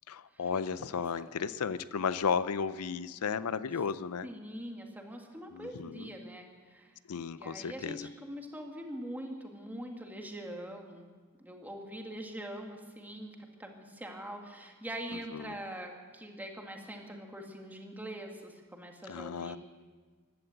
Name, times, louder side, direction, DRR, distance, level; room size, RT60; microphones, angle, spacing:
voice 1, 0.1-4.3 5.5-6.1 7.1-8.1 15.3-15.6 19.1-19.6, left 6 dB, 90° left, 16 dB, 0.5 m, -34 dB
voice 2, 4.2-7.0 7.3-11.1 11.4-19.6, right 1 dB, 10° right, 2 dB, 1.9 m, -43 dB
15.5 x 11.5 x 7.8 m, 1.5 s
head